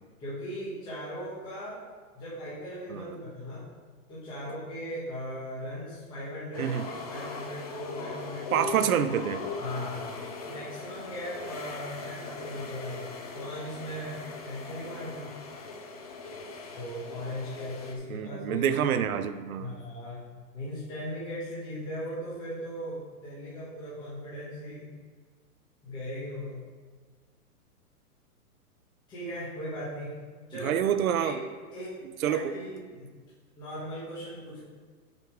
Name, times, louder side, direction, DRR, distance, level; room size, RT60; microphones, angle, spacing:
voice 1, 0.2-1.8 2.1-3.7 4.1-8.7 9.6-10.2 10.5-15.3 16.7-18.9 19.6-24.9 25.8-26.6 29.1-30.2 30.5-30.8 31.2-31.4 31.7-33.1 33.6-34.6, equal, 10° left, -10 dB, 1.3 m, -38 dB
sound 1, 6.5-17.9, left 4 dB, 25° left, 0.5 m, -40 dB
voice 2, 8.5-9.4 18.1-19.7 30.5-31.4 32.2-32.5, right 9 dB, 65° right, 11 dB, 0.7 m, -27 dB
6.6 x 5.2 x 5.0 m, 1.5 s
hypercardioid pair, 165°, 46 cm